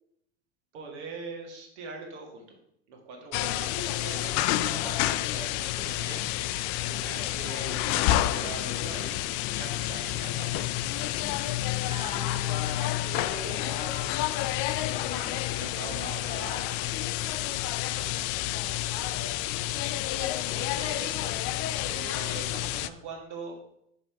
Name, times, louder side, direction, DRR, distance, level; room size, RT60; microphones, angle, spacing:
voice 1, 0.7-2.5 2.9-9.2 9.6-10.5 15.1-16.9 20.1-21.4 21.8-23.6, right 4 dB, 75° right, 1 dB, 1.9 m, -42 dB
sound 1, 3.3-22.9, left 14 dB, 45° left, 0.4 m, -29 dB
voice 2, 11.9-14.2 17.4-18.2, right 2 dB, 15° right, 2 dB, 1.3 m, -43 dB
5.8 x 5.2 x 4.5 m, 0.76 s
hypercardioid pair, 100°, 35 cm